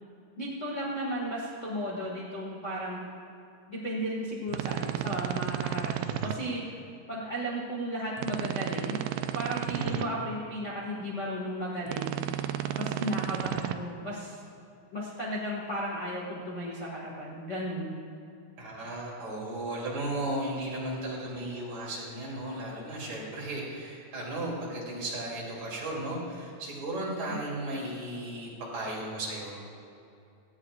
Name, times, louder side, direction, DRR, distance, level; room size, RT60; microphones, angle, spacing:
voice 1, 0.3-3.0 3.7-6.6 7.1-9.0 9.3-12.2 12.8-14.4 14.9-17.9 27.3-27.4, equal, 60° left, -5 dB, 0.7 m, -34 dB
sound 1, 4.5-6.3 8.2-10.0 11.9-13.7, right 11 dB, 80° right, 2.1 m, -32 dB
voice 2, 9.7-10.2 18.6-29.8, right 1 dB, 45° right, -5 dB, 4.0 m, -35 dB
18.0 x 15.0 x 2.5 m, 2.6 s
omnidirectional pair, 4.5 m